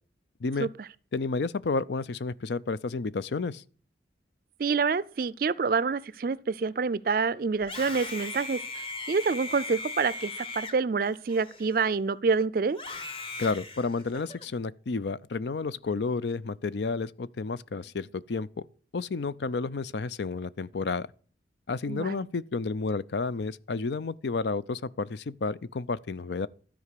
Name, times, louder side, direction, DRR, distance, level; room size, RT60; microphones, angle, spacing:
voice 1, 1.1-3.6 13.4-18.5 18.9-21.1 21.7-26.5, left 4 dB, 70° left, 0.5 m, -31 dB
voice 2, 4.6-8.6 9.1-12.8 21.9-22.2, right 5 dB, 50° right, 0.4 m, -27 dB
Screaming, 7.6-12.1 12.7-14.5, left 3 dB, 30° left, 1.2 m, -39 dB
12.5 x 4.9 x 8.3 m
head